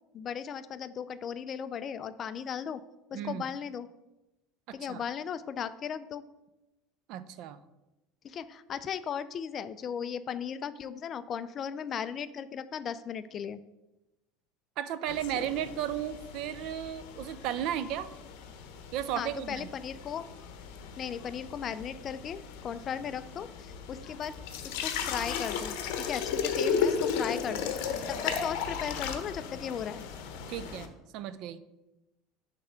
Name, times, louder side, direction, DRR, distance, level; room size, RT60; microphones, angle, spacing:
voice 1, 0.1-2.8 3.1-3.9 4.7-6.2 8.2-13.6 19.2-20.2 21.0-24.3 24.6-27.7 28.1-30.0, left 7 dB, 35° left, 14 dB, 0.3 m, -36 dB
voice 2, 3.1-3.5 4.7-5.0 7.1-7.6 14.8-18.1 18.9-19.7 30.5-31.6, right 11 dB, 55° right, 14 dB, 0.4 m, -34 dB
sound 1, 15.1-30.9, left 6 dB, 70° left, 0.8 m, -35 dB
6.9 x 3.3 x 5.7 m, 0.98 s
supercardioid pair, 140°, 0 cm